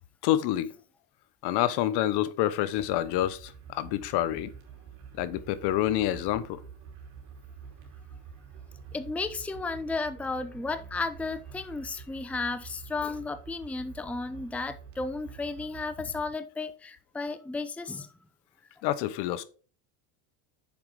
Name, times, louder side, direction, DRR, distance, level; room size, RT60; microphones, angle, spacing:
voice 1, 0.2-0.7 1.4-4.5 5.2-6.6 18.8-19.4, left 13 dB, 65° left, 0.9 m, -27 dB
sound 1, 2.8-16.2, right 6 dB, 80° right, 2.8 m, -47 dB
voice 2, 8.9-18.1, left 3 dB, 5° left, 0.5 m, -34 dB
7.0 x 5.2 x 4.6 m
supercardioid pair, 110°, 42 cm